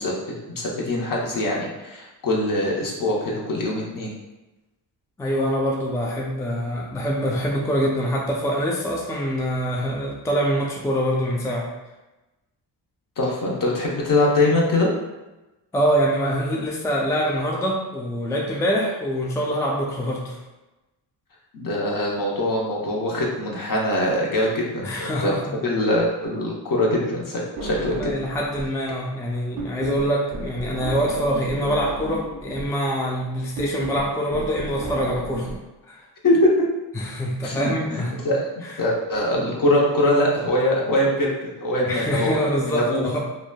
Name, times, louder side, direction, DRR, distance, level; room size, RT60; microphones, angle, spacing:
voice 1, 0.0-4.1 13.2-14.9 21.5-25.3 25.6-28.1 36.2-36.5 37.4-38.5 38.8-43.0, left 1 dB, 45° left, -3 dB, 0.9 m, -23 dB
voice 2, 5.2-11.7 15.7-20.4 24.8-25.5 28.0-35.5 35.9-36.1 36.9-38.1 38.6-38.7 41.9-43.2, equal, 5° left, -2 dB, 0.4 m, -25 dB
sound 1, 27.6-28.8 29.1-35.6, right 2 dB, 45° right, 0.6 m, -34 dB
3.0 x 2.1 x 2.2 m, 1.1 s
supercardioid pair, 50°, 46 cm